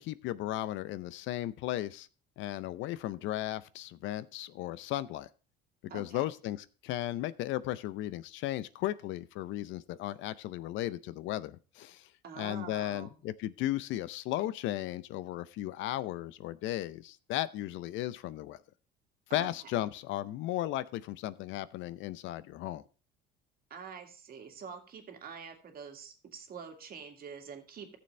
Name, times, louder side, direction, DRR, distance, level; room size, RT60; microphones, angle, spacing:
voice 1, 0.0-2.1 2.4-5.3 5.9-12.1 12.4-18.6 19.3-22.8, left 14 dB, 65° left, 17 dB, 0.6 m, -35 dB
voice 2, 5.9-6.3 12.2-13.2 19.3-19.5 23.7-28.0, right 6 dB, 45° right, 4 dB, 2.1 m, -46 dB
14.5 x 6.9 x 3.2 m, 0.36 s
supercardioid pair, 90°, 21 cm